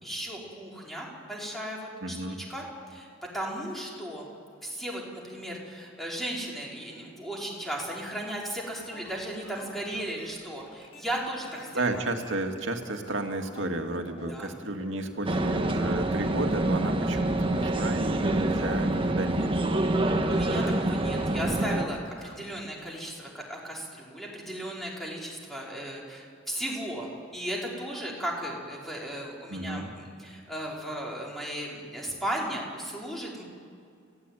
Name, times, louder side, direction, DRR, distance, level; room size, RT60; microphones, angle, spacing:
voice 1, 0.0-3.1 3.3-4.3 4.6-12.0 14.3-14.5 20.3-33.4, right 1 dB, ahead, -3 dB, 5.1 m, -36 dB
voice 2, 2.0-2.4 11.7-19.5 29.5-29.9, right 2 dB, 75° right, 4 dB, 2.3 m, -32 dB
sound 1, 8.6-23.0, left 1 dB, 30° left, 2.6 m, -47 dB
sound 2, 15.2-21.9, right 1 dB, 30° right, 1.4 m, -26 dB
29.5 x 16.5 x 9.3 m, 2.4 s
head